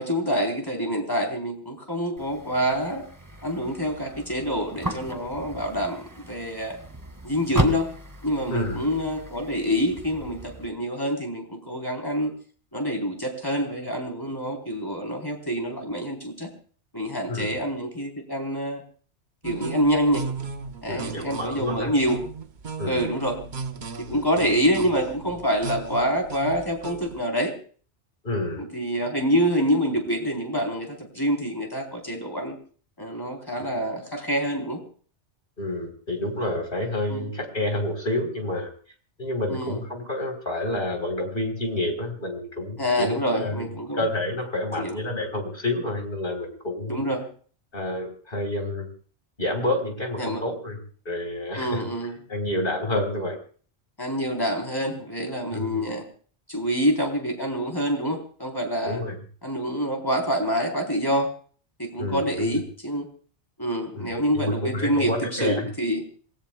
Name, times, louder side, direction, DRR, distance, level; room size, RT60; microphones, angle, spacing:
voice 1, 0.0-3.0 3.4-6.8 7.2-7.9 8.2-12.3 12.7-16.5 16.9-18.8 19.4-20.3 20.8-22.2 22.9-23.4 24.0-27.5 28.6-32.6 33.0-34.8 37.1-37.3 39.5-39.8 42.8-44.0 44.8-45.0 46.9-47.3 50.2-50.4 51.6-52.2 54.0-56.0 56.5-59.0 59.4-61.3 61.8-63.1 63.6-66.0, equal, 20° left, 2 dB, 3.9 m, -26 dB
sound 1, 2.2-10.7, right 1 dB, 15° right, 1.8 m, -34 dB
voice 2, 8.5-8.9 17.3-17.5 20.9-21.9 22.8-23.0 24.1-24.2 28.2-28.7 35.6-38.7 39.2-43.7 43.9-47.0 47.7-48.9 49.4-50.8 51.1-51.8 52.3-53.4 55.5-55.9 58.8-59.2 62.0-62.6 63.9-65.7, left 1 dB, 50° left, 4 dB, 4.2 m, -29 dB
sound 2, 19.4-27.2, right 4 dB, 45° right, 1.0 m, -36 dB
26.5 x 19.0 x 2.3 m, 0.43 s
omnidirectional pair, 1.2 m